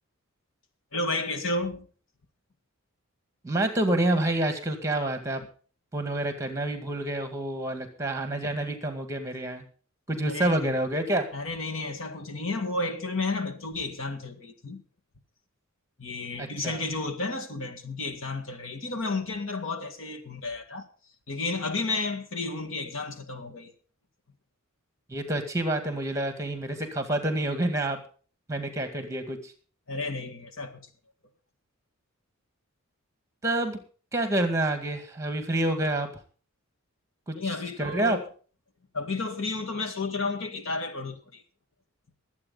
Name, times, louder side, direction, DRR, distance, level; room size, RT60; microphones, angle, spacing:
voice 1, 0.9-1.9 10.2-10.8 11.3-14.8 16.0-20.9 21.3-23.7 29.9-30.8 37.4-38.2 38.9-41.4, left 3 dB, 60° left, 1.9 m, -32 dB
voice 2, 3.4-5.4 5.9-9.7 10.1-11.3 16.4-16.8 25.1-28.0 28.5-29.5 33.4-33.8 34.1-36.1 37.3-37.4 37.8-38.2, right 1 dB, 15° right, 2.1 m, -28 dB
22.0 x 8.6 x 4.0 m
head